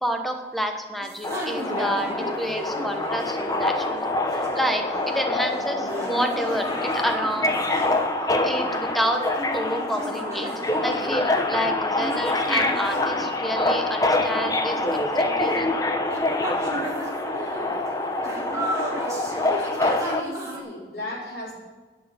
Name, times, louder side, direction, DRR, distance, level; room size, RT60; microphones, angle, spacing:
voice 1, 0.0-4.2 4.5-7.6 8.4-9.2 9.5-10.5 10.8-15.7, equal, ahead, 4 dB, 1.1 m, -29 dB
sound 1, 1.0-20.6, right 1 dB, 20° right, 2.2 m, -35 dB
Subway metro underground, 1.2-20.2, left 2 dB, 20° left, 0.8 m, -26 dB
voice 2, 19.8-21.6, left 1 dB, 60° left, -6 dB, 4.1 m, -35 dB
11.0 x 6.6 x 8.9 m, 1.3 s
head